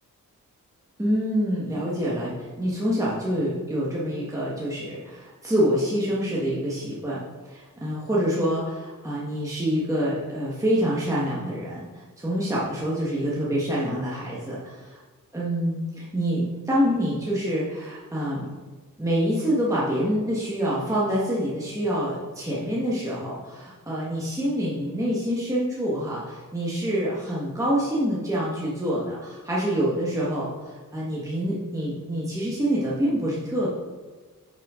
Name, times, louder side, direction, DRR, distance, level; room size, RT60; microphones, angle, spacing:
voice 1, 1.0-15.0 15.3-18.5 19.0-33.7, equal, 10° right, -7 dB, 1.5 m, -26 dB
10.0 x 6.4 x 3.7 m, 1.3 s
wide cardioid pair, 130°, 34 cm